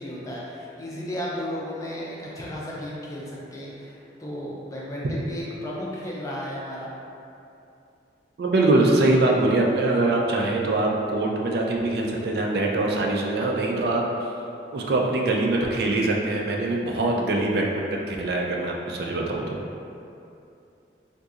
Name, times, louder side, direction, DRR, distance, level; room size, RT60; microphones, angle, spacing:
voice 1, 0.0-6.9, left 1 dB, 20° left, -5 dB, 0.4 m, -34 dB
voice 2, 8.4-14.1 14.7-19.6, right 2 dB, 60° right, 0 dB, 0.3 m, -23 dB
3.9 x 2.6 x 2.4 m, 2.7 s
head